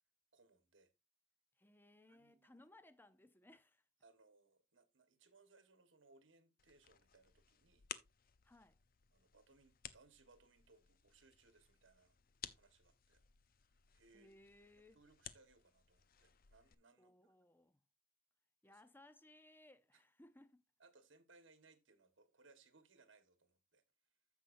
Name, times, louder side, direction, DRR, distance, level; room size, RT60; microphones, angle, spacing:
voice 1, 0.3-0.9 2.1-2.6 4.0-7.9 9.1-12.2 12.5-13.3 13.9-14.3 14.9-17.3 18.6-18.9 19.9-20.0 20.8-23.8, right 3 dB, 80° right, 1.4 m, -69 dB
voice 2, 1.6-3.8 8.4-8.8 14.1-15.0 17.0-17.8 18.6-20.6, left 1 dB, 10° left, 0.7 m, -64 dB
sound 1, 6.6-16.7, left 9 dB, 50° left, 0.6 m, -57 dB
15.0 x 5.5 x 2.6 m
head